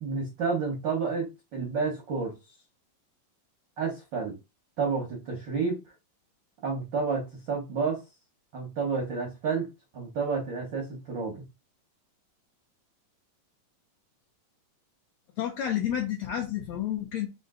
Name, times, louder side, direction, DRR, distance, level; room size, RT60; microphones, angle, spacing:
voice 1, 0.0-2.3 3.8-4.3 4.8-5.8 6.6-8.0 8.5-9.7 9.9-11.4, right 5 dB, 85° right, 1.0 m, -30 dB
voice 2, 15.4-17.3, left 10 dB, 85° left, 1.5 m, -30 dB
5.3 x 2.6 x 3.7 m
omnidirectional pair, 3.9 m